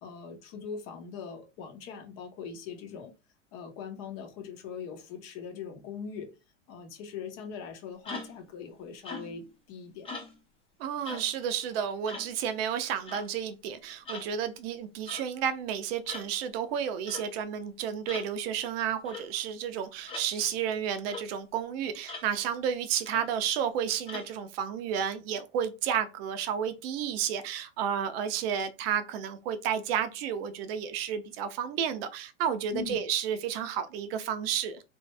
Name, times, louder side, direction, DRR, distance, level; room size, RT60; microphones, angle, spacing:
voice 1, 0.0-3.1 3.5-6.4 6.7-10.1 32.7-33.0, left 6 dB, 45° left, 1.0 m, -41 dB
sound 1, 8.0-8.5 9.0-9.5 10.0-10.4 11.1-11.3 12.1-12.3 13.1-13.3 14.1-14.3 15.1-15.3 16.1-16.3 17.1-17.3 18.1-18.3 19.1-19.3 20.1-20.3 21.1-21.3 22.1-22.3 23.1-23.3 24.1-24.3, left 3 dB, 15° left, 1.0 m, -41 dB
voice 2, 10.8-34.8, right 8 dB, 50° right, 0.6 m, -31 dB
3.0 x 2.7 x 3.3 m
hypercardioid pair, 110°, 37 cm